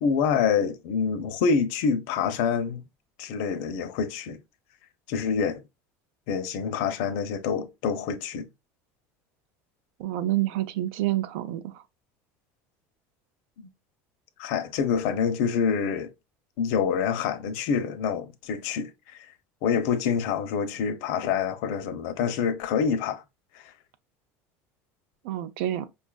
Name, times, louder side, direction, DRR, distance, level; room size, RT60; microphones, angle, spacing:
voice 1, 0.0-2.8 3.2-4.4 5.1-5.6 6.3-8.5 13.6-13.7 14.4-16.1 16.6-18.9 19.6-23.2 23.5-23.6, left 6 dB, 70° left, 0.6 m, -26 dB
voice 2, 10.0-11.8 25.2-25.9, right 14 dB, 85° right, 0.5 m, -28 dB
5.3 x 2.4 x 2.2 m
cardioid pair, 165°, 7 cm